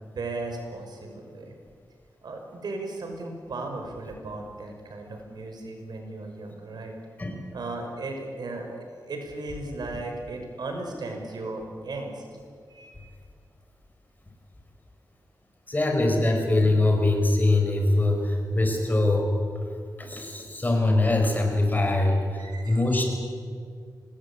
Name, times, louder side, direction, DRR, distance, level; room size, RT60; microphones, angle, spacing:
voice 1, 0.2-1.5 2.2-6.9 7.5-12.2 12.7-12.9 22.4-22.8, right 2 dB, 85° right, 3 dB, 5.7 m, -36 dB
voice 2, 15.7-19.3 20.0-23.1, left 2 dB, 25° left, 3 dB, 5.8 m, -23 dB
26.0 x 20.0 x 8.7 m, 2.2 s
wide cardioid pair, 100°, 7 cm